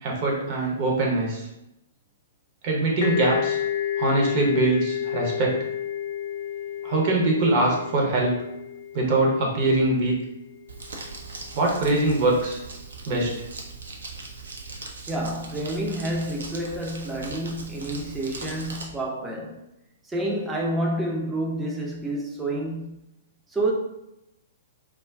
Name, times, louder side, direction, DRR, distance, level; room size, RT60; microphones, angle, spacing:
voice 1, 0.0-1.5 2.6-3.6 4.0-5.6 6.8-8.4 8.9-10.1 11.5-12.6 13.1-13.3, right 2 dB, 40° right, 0.8 m, -23 dB
sound 1, 3.0-10.5, left 9 dB, 45° left, 0.4 m, -31 dB
Crumpling crinkling, 10.7-18.8, right 3 dB, 65° right, 0.5 m, -39 dB
voice 2, 15.1-19.7 20.1-23.0 23.5-23.7, right 1 dB, 10° right, 0.5 m, -29 dB
2.3 x 2.2 x 3.4 m
figure-of-eight pair, 115°, 0 cm